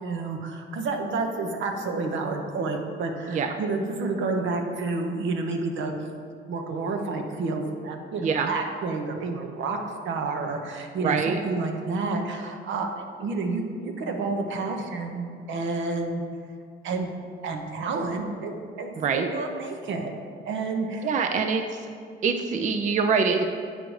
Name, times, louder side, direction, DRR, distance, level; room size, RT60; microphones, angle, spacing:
voice 1, 0.0-5.9 6.5-9.8 10.0-12.9 13.2-16.2 16.8-17.1 17.4-20.1 20.4-21.1, right 3 dB, 75° right, 4 dB, 0.8 m, -29 dB
voice 2, 8.2-8.5 11.0-11.4 19.0-19.3 21.0-21.6 22.2-23.4, right 5 dB, 40° right, 5 dB, 0.4 m, -24 dB
8.0 x 4.9 x 3.1 m, 2.2 s
cardioid pair, 90°, 20 cm